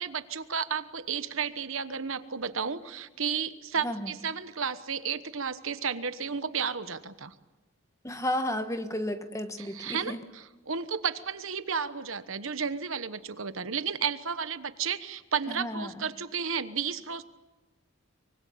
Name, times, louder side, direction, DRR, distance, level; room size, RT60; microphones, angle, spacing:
voice 1, 0.0-7.3 9.6-17.2, right 6 dB, 70° right, 12 dB, 1.2 m, -33 dB
voice 2, 8.0-10.2 15.5-16.1, left 1 dB, 15° left, 8 dB, 1.3 m, -33 dB
24.5 x 24.0 x 8.7 m, 1.1 s
head